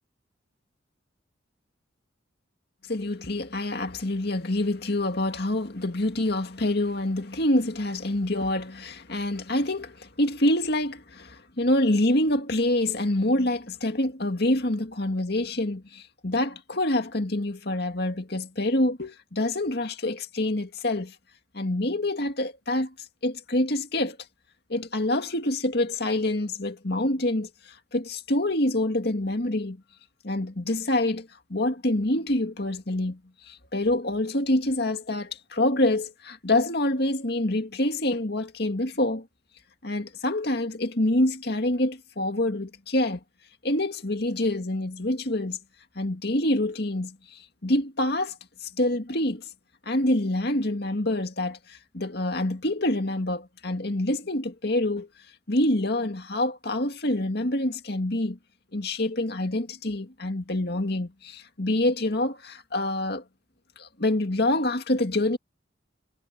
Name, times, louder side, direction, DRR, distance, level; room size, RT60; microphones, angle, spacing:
voice 1, 2.9-21.2 21.5-22.9 23.2-24.2 24.7-29.8 30.2-33.2 33.5-39.3 39.8-43.2 43.6-45.6 46.0-48.4 48.6-49.4 49.9-55.1 55.5-58.4 58.7-63.2 63.8-65.4, left 1 dB, 55° left, 2.2 m, -26 dB
head